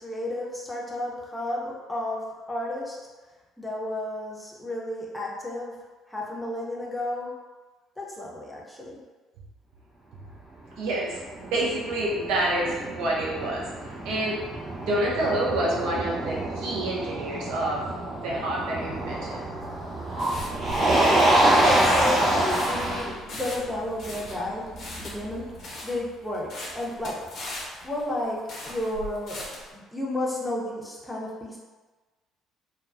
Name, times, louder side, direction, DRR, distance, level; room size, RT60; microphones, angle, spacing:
voice 1, 0.0-2.2 2.5-3.0 3.6-5.7 6.1-7.3 8.0-9.0 21.4-24.6 25.0-25.4 25.8-27.2 27.6-28.4 28.7-31.6, left 1 dB, 10° left, -4 dB, 0.6 m, -32 dB
Motor vehicle (road), 10.6-25.6, right 1 dB, 50° right, 0.9 m, -27 dB
voice 2, 10.8-13.7 14.0-14.4 14.8-19.5, right 1 dB, 65° right, -4 dB, 0.5 m, -28 dB
sound 1, 19.6-29.7, left 1 dB, 55° left, 0.6 m, -40 dB
2.2 x 2.2 x 2.4 m, 1.3 s
hypercardioid pair, 50°, 0 cm